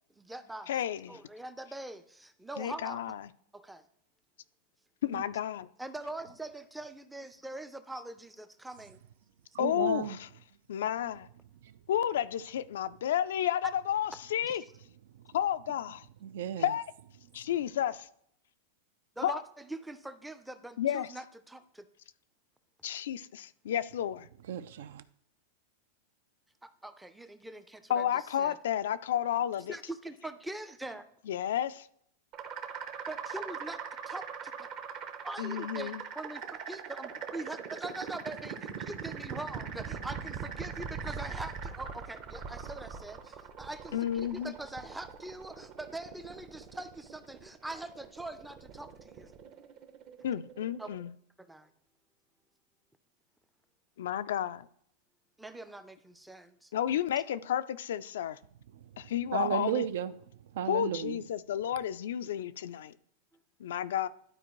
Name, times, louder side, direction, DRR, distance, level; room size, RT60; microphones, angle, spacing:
voice 1, 0.2-0.7 1.1-3.0 3.5-3.8 5.8-9.0 19.2-21.9 26.6-28.1 28.4-28.6 29.7-31.1 33.1-33.8 34.1-34.7 35.2-49.3 50.8-50.9 51.4-51.7 55.4-57.0, right 2 dB, 5° right, 0.4 m, -43 dB
voice 2, 0.7-1.2 2.6-3.3 5.0-5.7 9.6-10.3 10.7-11.3 11.9-14.6 15.3-16.1 16.6-16.8 17.3-18.1 19.2-19.4 20.8-21.1 22.8-24.3 27.9-29.8 31.3-31.9 35.4-36.0 43.9-44.5 50.2-51.1 54.0-54.7 56.7-58.4 59.0-59.9 60.7-63.0 63.6-64.1, left 10 dB, 80° left, 0.4 m, -31 dB
voice 3, 9.5-10.2 11.6-11.7 16.2-16.7 24.5-25.0 59.3-60.2 60.5-61.2, right 9 dB, 75° right, 0.5 m, -34 dB
sound 1, 32.3-51.1, right 6 dB, 35° right, 0.7 m, -42 dB
11.5 x 4.3 x 3.1 m
supercardioid pair, 150°, 0 cm